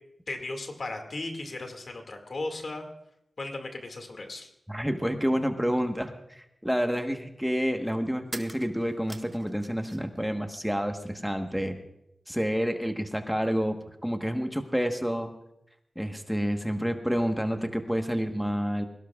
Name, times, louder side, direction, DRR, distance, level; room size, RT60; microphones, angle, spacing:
voice 1, 0.3-2.9 3.4-4.5, left 2 dB, 65° left, 4 dB, 2.1 m, -36 dB
voice 2, 4.7-11.8 12.3-15.3 15.9-18.8, equal, ahead, 5 dB, 1.3 m, -29 dB
sound 1, 8.3-10.2 10.5-11.4, right 1 dB, 25° right, 1.3 m, -45 dB
21.5 x 17.5 x 2.4 m, 0.82 s
cardioid pair, 50°, 0 cm